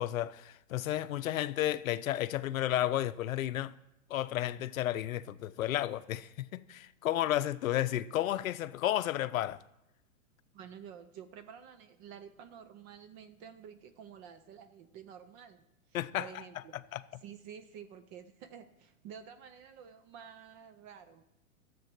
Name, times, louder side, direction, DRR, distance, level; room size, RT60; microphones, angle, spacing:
voice 1, 0.0-3.7 4.1-9.6 15.9-16.3 16.9-17.0, left 13 dB, 75° left, 0.7 m, -32 dB
voice 2, 10.5-16.8 17.2-21.2, right 8 dB, 20° right, 0.3 m, -50 dB
13.0 x 7.5 x 6.0 m
hypercardioid pair, 120°, 42 cm